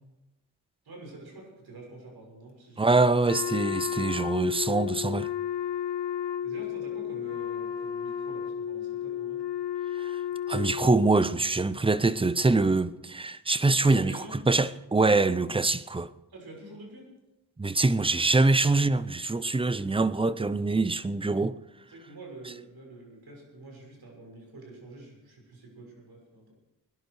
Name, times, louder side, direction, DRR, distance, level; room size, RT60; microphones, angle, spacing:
voice 1, 0.8-2.9 6.4-9.4 13.7-14.4 16.3-17.1 21.9-26.5, right 2 dB, 65° right, 6.5 m, -47 dB
voice 2, 2.8-5.3 10.0-10.1 10.5-14.2 14.5-16.1 17.6-21.5, right 3 dB, 15° right, 0.6 m, -24 dB
Wind instrument woodwind instrument, 3.2-11.2, left 9 dB, 75° left, 1.3 m, -32 dB
21.0 x 11.0 x 4.8 m
cardioid pair, 85°, 41 cm